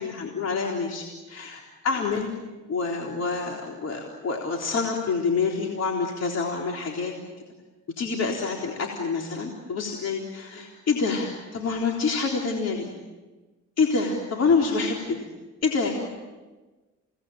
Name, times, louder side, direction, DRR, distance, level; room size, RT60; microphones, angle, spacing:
voice 1, 0.0-2.3 2.7-7.3 8.0-12.9 13.8-15.3 15.6-16.1, left 4 dB, 55° left, 0 dB, 3.9 m, -27 dB
30.0 x 19.0 x 9.1 m, 1.2 s
cardioid pair, 90°, 30 cm